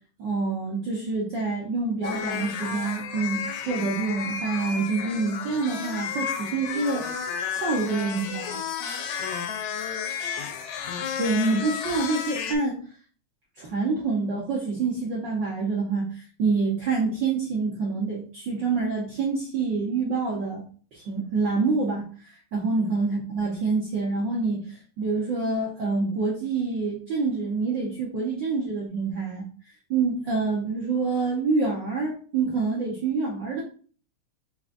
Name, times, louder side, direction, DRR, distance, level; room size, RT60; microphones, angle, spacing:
voice 1, 0.2-7.0 7.5-8.6 11.2-12.8 13.6-20.6 20.9-29.4 29.9-33.6, right 4 dB, 80° right, -4 dB, 1.0 m, -27 dB
sound 1, 2.0-12.6, left 7 dB, 80° left, 1.9 m, -32 dB
4.7 x 3.9 x 2.5 m, 0.42 s
omnidirectional pair, 3.4 m